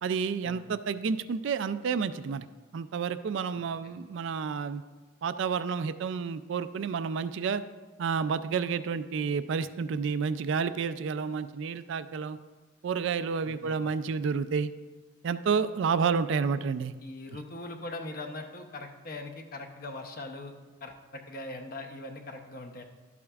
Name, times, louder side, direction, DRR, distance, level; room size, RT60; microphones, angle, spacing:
voice 1, 0.0-2.4 2.7-4.8 5.2-7.6 8.0-12.4 12.8-14.7 15.2-16.9, right 5 dB, 60° right, 12 dB, 0.3 m, -30 dB
voice 2, 13.5-13.9 17.0-20.5 20.8-22.8, left 2 dB, 45° left, 4 dB, 0.7 m, -41 dB
12.0 x 8.4 x 2.4 m, 1.3 s
head